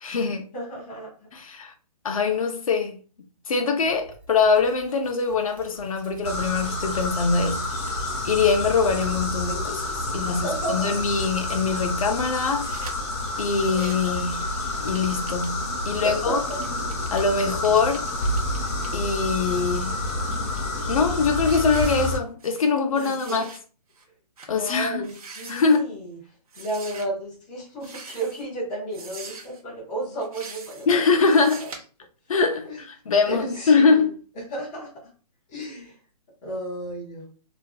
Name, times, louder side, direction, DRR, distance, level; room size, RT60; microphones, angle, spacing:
voice 1, 0.0-0.5 1.3-1.7 2.0-3.0 3.5-7.7 8.2-12.7 13.4-16.4 17.1-18.0 18.9-20.0 20.9-23.5 24.5-25.0 25.5-25.9 30.9-31.6 32.3-34.1, left 4 dB, 60° left, 0.5 m, -23 dB
voice 2, 0.5-1.3 10.1-11.0 16.0-16.6 17.4-17.8 22.9-23.5 24.5-26.2 26.5-30.9 31.4-31.7 32.6-32.8 33.3-34.1 34.3-34.9 35.5-36.0 36.4-37.3, right 1 dB, 5° left, 0.3 m, -33 dB
sound 1, 3.8-14.2 14.5-14.6, right 1 dB, 35° right, 1.1 m, -45 dB
sound 2, 6.2-22.2, left 1 dB, 45° left, 1.0 m, -29 dB
sound 3, 12.4-12.9 13.5-14.1 14.5-18.9 19.4-20.6 21.0-21.2 21.4-22.7 22.9-23.6 23.9-24.0 24.4-24.5 25.0-25.8 26.5-27.1 27.8-28.5 28.9-29.6 30.2-30.9 31.2-31.8, right 4 dB, 60° right, 0.7 m, -43 dB
2.6 x 2.4 x 2.3 m
hypercardioid pair, 165°, 20 cm